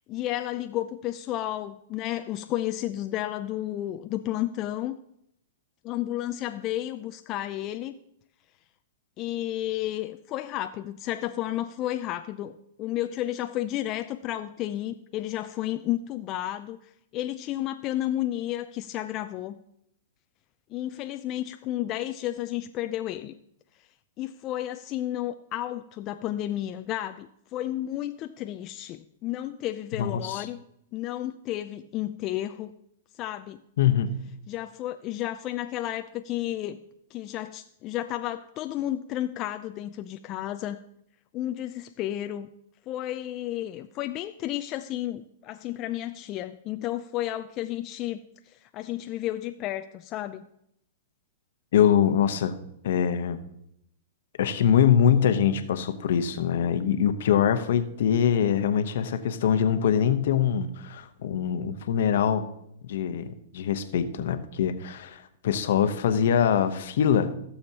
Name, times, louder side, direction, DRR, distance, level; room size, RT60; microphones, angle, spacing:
voice 1, 0.1-5.0 5.8-7.9 9.2-12.5 12.8-16.8 17.1-19.6 20.7-23.3 24.2-30.6 30.9-32.7 33.2-33.6 34.5-36.8 37.1-40.8 41.3-42.5 42.9-48.2 48.7-50.5, left 13 dB, 35° left, 7 dB, 0.4 m, -32 dB
voice 2, 30.0-30.5 33.8-34.1 51.7-52.6 52.8-53.5 54.4-62.5 62.8-67.3, left 8 dB, 70° left, 10 dB, 0.9 m, -23 dB
16.0 x 7.0 x 2.9 m, 0.75 s
hypercardioid pair, 135°, 0 cm